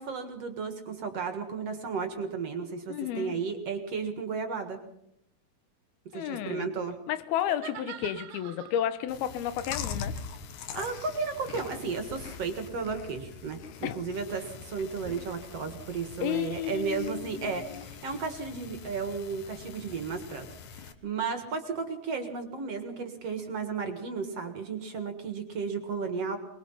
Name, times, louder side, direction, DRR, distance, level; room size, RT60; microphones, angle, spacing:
voice 1, 0.0-4.8 6.1-7.0 10.7-26.4, right 5 dB, 50° right, 6 dB, 2.3 m, -34 dB
voice 2, 2.9-3.3 6.1-6.7 7.1-10.1 13.8-14.0 15.1-15.3 16.2-17.9, left 11 dB, 85° left, 13 dB, 2.9 m, -32 dB
sound 1, 7.4-9.1 10.0-13.0, right 12 dB, 75° right, 2.6 m, -46 dB
Chewing mastication, 9.1-20.9, left 6 dB, 65° left, 2.3 m, -43 dB
23.5 x 21.5 x 5.7 m, 0.79 s
omnidirectional pair, 4.3 m